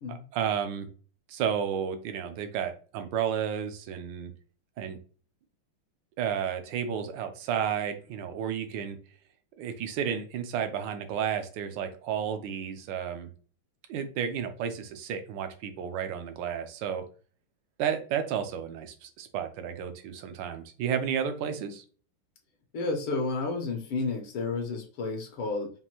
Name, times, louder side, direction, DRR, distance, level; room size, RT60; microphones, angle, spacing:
voice 1, 0.1-0.9 1.3-4.3 4.8-5.0 6.2-9.0 9.6-13.3 13.9-17.0 17.8-21.8, right 8 dB, 70° right, 8 dB, 1.2 m, -32 dB
voice 2, 22.7-25.7, left 3 dB, 80° left, 3 dB, 1.8 m, -31 dB
5.4 x 2.5 x 2.9 m, 0.40 s
omnidirectional pair, 2.4 m